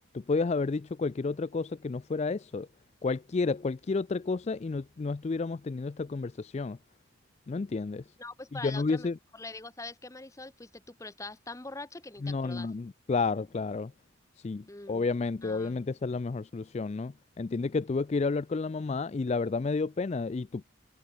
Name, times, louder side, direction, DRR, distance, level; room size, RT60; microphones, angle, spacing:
voice 1, 0.1-2.7 3.0-6.8 7.5-8.0 8.5-9.2 12.2-13.9 14.4-20.6, left 4 dB, 30° left, 0.3 m, -31 dB
voice 2, 8.2-9.1 9.3-12.7 14.7-15.1 15.4-15.9, left 3 dB, 15° left, 0.9 m, -43 dB
head